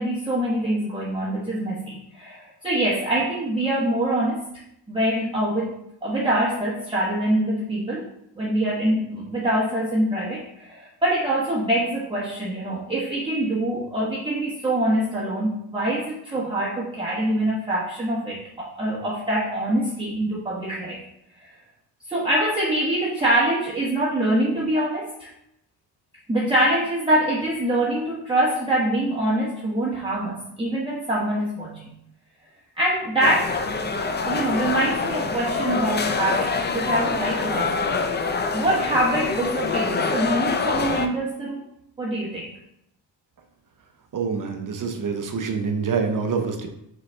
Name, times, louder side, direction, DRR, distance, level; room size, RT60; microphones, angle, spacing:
voice 1, 0.0-4.4 4.9-5.7 6.0-8.1 8.4-21.0 21.4-21.5 22.1-25.3 26.3-32.0 32.8-33.7 34.3-41.6 42.0-42.5, right 1 dB, 10° right, -8 dB, 1.0 m, -24 dB
sound 1, 33.2-41.1, left 4 dB, 25° left, 0.4 m, -25 dB
voice 2, 44.1-46.7, right 5 dB, 45° right, 5 dB, 0.8 m, -26 dB
4.0 x 3.8 x 3.3 m, 0.79 s
cardioid pair, 80°, 44 cm